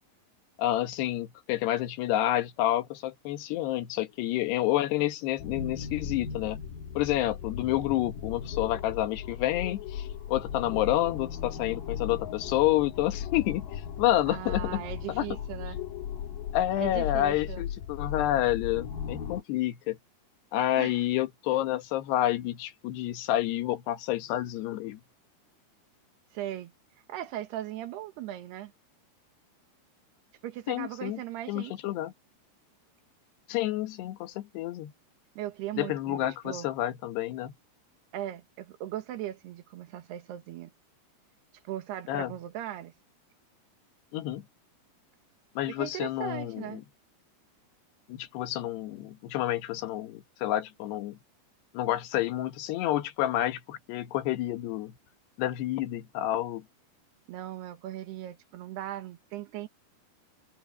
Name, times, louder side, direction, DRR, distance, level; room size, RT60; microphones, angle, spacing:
voice 1, 0.6-6.6 6.9-14.8 15.1-15.2 16.5-20.0 20.5-25.0 30.7-31.2 31.5-32.1 33.5-34.9 35.8-37.5 42.1-42.3 44.1-44.4 45.6-46.8 48.1-51.2 51.7-54.9 55.4-56.6, left 14 dB, 85° left, 3.4 m, -29 dB
sound 1, 5.4-19.4, left 8 dB, 60° left, 3.0 m, -37 dB
voice 2, 14.3-15.8 16.8-17.6 20.8-20.9 26.3-26.7 27.1-28.7 30.4-31.9 35.4-36.7 38.1-40.7 41.6-42.9 45.7-46.8 57.3-59.7, right 13 dB, 80° right, 3.4 m, -38 dB
omnidirectional pair, 4.7 m